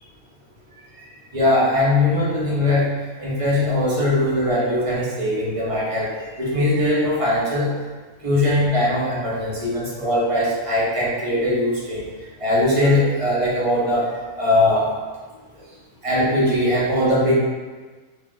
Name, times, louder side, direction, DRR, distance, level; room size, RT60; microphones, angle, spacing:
voice 1, 1.3-2.8 3.2-7.7 8.2-12.0 12.4-14.1 14.4-14.9 16.0-17.3, left 1 dB, 35° right, -7 dB, 0.5 m, -20 dB
2.8 x 2.3 x 3.8 m, 1.4 s
omnidirectional pair, 1.6 m